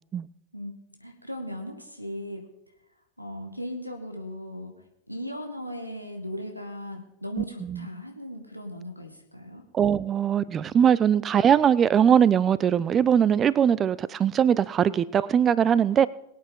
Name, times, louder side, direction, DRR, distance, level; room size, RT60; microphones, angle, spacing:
voice 1, 1.0-2.5 3.2-9.7, equal, 90° right, 4 dB, 1.8 m, -37 dB
voice 2, 7.4-7.8 9.7-16.1, right 8 dB, 25° right, 20 dB, 0.5 m, -21 dB
22.5 x 8.6 x 3.8 m, 0.82 s
figure-of-eight pair, 90°, 0 cm